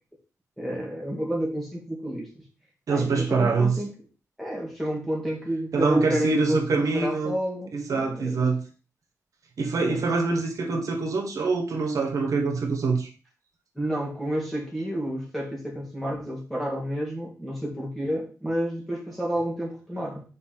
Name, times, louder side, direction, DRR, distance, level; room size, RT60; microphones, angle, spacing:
voice 1, 0.6-2.5 2.9-3.9 4.4-8.4 9.8-10.0 13.8-20.2, equal, 5° left, -3 dB, 2.1 m, -30 dB
voice 2, 2.9-3.8 5.7-7.3 7.7-8.6 9.6-13.1, right 4 dB, 75° right, 2 dB, 1.4 m, -24 dB
4.7 x 4.3 x 5.9 m, 0.37 s
wide cardioid pair, 160°, 6 cm